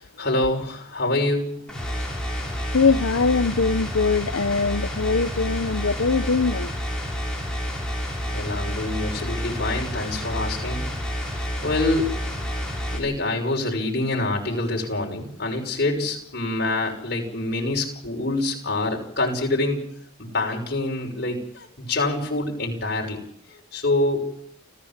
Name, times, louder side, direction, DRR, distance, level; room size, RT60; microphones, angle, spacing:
voice 1, 0.0-1.7 8.2-10.9 11.3-12.2 12.9-19.9 20.2-23.2 23.5-24.3, left 2 dB, 50° left, 6.0 m, -26 dB
sound 1, 1.7-13.0, equal, 5° left, 5.7 m, -29 dB
voice 2, 2.7-6.7, left 4 dB, 85° left, 0.8 m, -22 dB
30.0 x 15.0 x 7.4 m
head